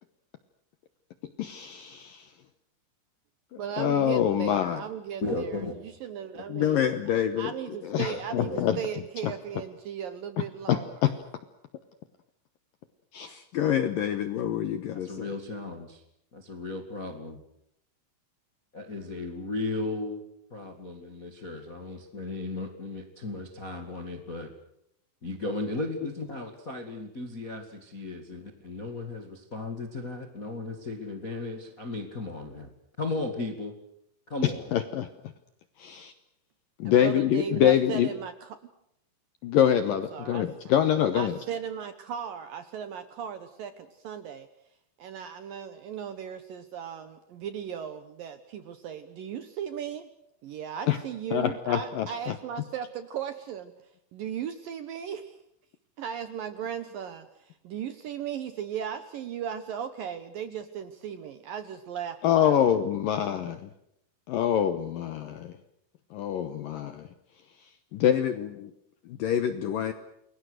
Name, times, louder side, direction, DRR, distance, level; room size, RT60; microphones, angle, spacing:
voice 1, 1.2-2.3 3.5-4.8 6.5-9.6 10.4-11.1 13.1-15.3 34.4-35.1 35.8-36.1 36.8-38.1 39.4-41.4 50.9-51.0 51.3-52.4 62.2-63.7 64.3-65.6 66.1-67.1 67.5-68.7 69.0-69.9, left 10 dB, 75° left, 10 dB, 2.1 m, -26 dB
voice 2, 3.6-6.9 7.4-10.9 36.9-38.3 40.1-40.5 41.1-44.5 45.0-50.1 50.4-53.7 54.1-55.3 56.0-62.6, right 8 dB, 70° right, 10 dB, 2.2 m, -37 dB
voice 3, 5.2-5.7 6.3-6.4 8.1-8.6 14.9-16.0 16.3-17.4 18.7-20.2 20.5-24.5 25.2-32.7 33.0-33.7 34.3-34.7, left 2 dB, 45° left, 5 dB, 1.1 m, -35 dB
29.0 x 22.0 x 6.5 m, 0.77 s
omnidirectional pair, 5.3 m